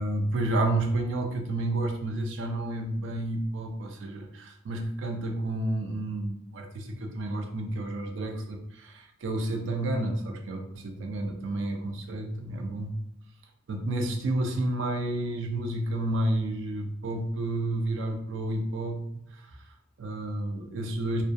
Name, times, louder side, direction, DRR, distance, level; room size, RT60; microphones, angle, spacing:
voice 1, 0.0-12.9 13.7-19.0 19.3-21.2, right 1 dB, 65° right, 4 dB, 0.4 m, -30 dB
2.2 x 2.2 x 2.5 m, 0.76 s
head